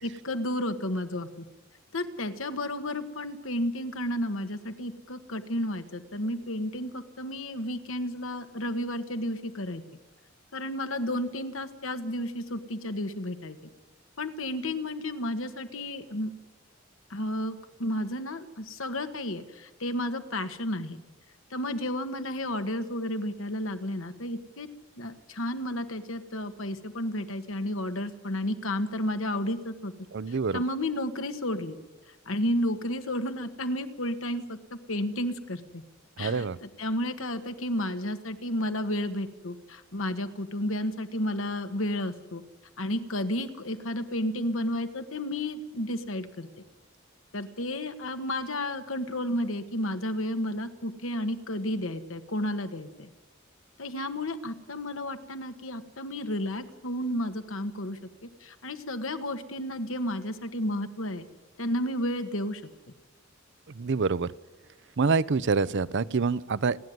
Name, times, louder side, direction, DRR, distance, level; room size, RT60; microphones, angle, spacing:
voice 1, 0.0-1.4 1.9-9.8 10.5-13.6 14.2-16.3 17.1-21.0 21.5-24.7 25.0-29.9 30.3-31.8 32.3-34.6 34.9-35.8 36.2-42.4 42.8-46.5 47.3-53.1 53.8-58.0 58.4-61.3 61.6-62.6, left 1 dB, 70° left, 8 dB, 1.6 m, -32 dB
voice 2, 30.1-30.6 36.2-36.6 63.7-64.3 65.0-66.8, right 4 dB, 60° right, 18 dB, 0.6 m, -26 dB
30.0 x 10.5 x 9.5 m, 1.1 s
head